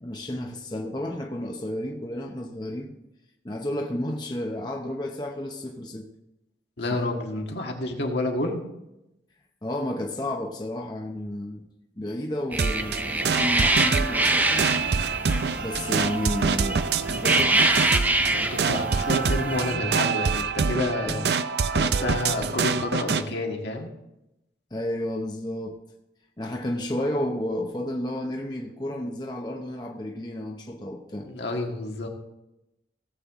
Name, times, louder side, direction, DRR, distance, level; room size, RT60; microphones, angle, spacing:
voice 1, 0.0-2.9 3.4-6.1 6.9-7.0 9.6-11.6 12.0-14.7 15.6-17.7 21.1-21.3 24.7-25.8 26.4-31.3, left 1 dB, 25° left, 1 dB, 0.8 m, -32 dB
voice 2, 6.8-8.7 18.3-21.2 21.7-23.9 31.3-32.1, left 2 dB, 75° left, 1 dB, 1.8 m, -29 dB
sound 1, 12.5-19.7, right 2 dB, 10° right, 0.5 m, -26 dB
sound 2, 12.6-23.2, right 5 dB, 65° right, 0.5 m, -26 dB
17.0 x 7.8 x 3.7 m, 0.90 s
head